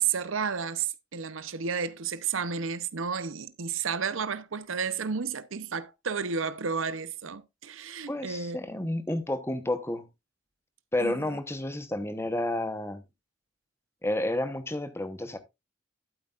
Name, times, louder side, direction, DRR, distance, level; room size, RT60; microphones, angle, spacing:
voice 1, 0.0-8.6 8.9-9.0 11.0-11.4, right 6 dB, 85° right, 0.8 m, -32 dB
voice 2, 8.1-10.1 10.9-13.0 14.0-15.4, left 1 dB, 15° left, 1.0 m, -30 dB
12.0 x 8.3 x 2.5 m
head